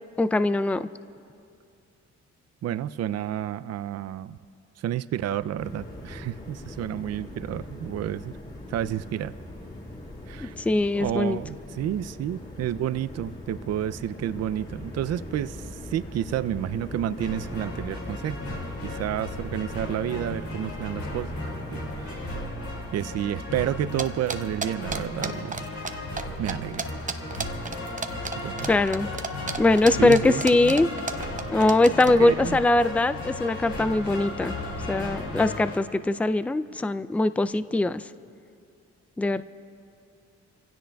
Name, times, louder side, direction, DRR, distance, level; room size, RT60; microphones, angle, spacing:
voice 1, 0.2-0.9 10.4-11.4 28.7-29.1 29.6-30.9 31.5-34.5 34.9-38.0 39.2-39.4, left 2 dB, 5° left, 13 dB, 0.4 m, -22 dB
voice 2, 2.6-4.4 4.8-8.3 8.7-9.3 10.3-10.6 10.9-15.6 15.9-18.4 18.8-21.3 21.7-22.3 22.9-25.7 26.4-26.8 28.4-28.7 30.0-30.8 31.4-31.5 32.2-32.6, right 11 dB, 60° right, 15 dB, 0.5 m, -30 dB
sound 1, 5.6-22.5, left 1 dB, 30° left, 4.2 m, -41 dB
sound 2, 17.2-35.8, left 2 dB, 90° left, 2.5 m, -35 dB
sound 3, 24.0-25.9 26.2-26.3 26.5-32.1, right 4 dB, 25° right, 0.7 m, -31 dB
28.5 x 16.0 x 2.3 m, 2.5 s
cardioid pair, 70°, 30 cm